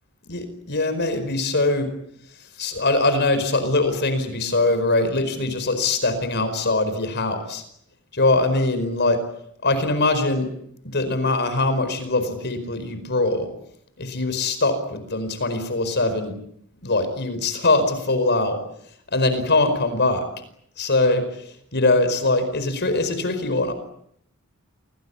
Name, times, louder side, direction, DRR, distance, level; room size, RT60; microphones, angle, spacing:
voice 1, 0.3-1.9 2.6-7.6 8.1-9.2 9.6-10.5 10.8-13.5 14.0-16.3 16.8-18.6 19.1-20.2 20.8-21.2 21.7-23.7, left 2 dB, 55° left, 10 dB, 4.8 m, -22 dB
28.5 x 20.0 x 9.7 m, 0.73 s
head